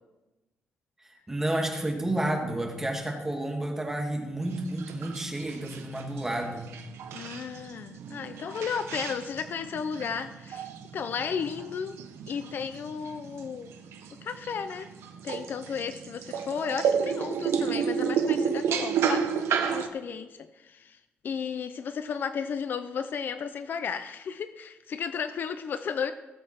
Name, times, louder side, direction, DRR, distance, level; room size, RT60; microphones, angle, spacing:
voice 1, 1.0-6.7, right 1 dB, 10° right, 1 dB, 1.8 m, -31 dB
sound 1, 4.4-19.9, right 7 dB, 75° right, 1.1 m, -32 dB
voice 2, 7.1-12.0 12.3-13.7 14.2-14.9 15.2-21.0 21.2-26.1, left 6 dB, 50° left, 10 dB, 0.6 m, -34 dB
17.5 x 7.8 x 4.4 m, 1.1 s
cardioid pair, 150°, 4 cm